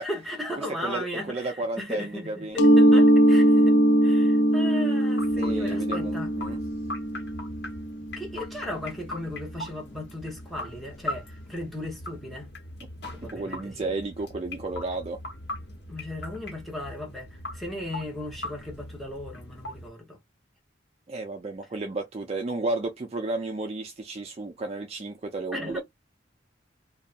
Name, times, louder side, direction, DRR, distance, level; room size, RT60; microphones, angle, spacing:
voice 1, 0.0-3.7 4.0-6.3 8.2-12.5 13.1-13.8 15.9-20.2 25.5-25.8, left 1 dB, ahead, 1.0 m, -36 dB
voice 2, 0.6-2.6 5.4-6.6 13.2-15.2 21.1-25.8, right 2 dB, 35° right, 0.4 m, -33 dB
Mallet percussion, 2.6-8.1, right 1 dB, 90° left, 0.5 m, -20 dB
sound 1, 5.2-19.9, left 1 dB, 65° left, 1.1 m, -40 dB
2.6 x 2.3 x 2.5 m
head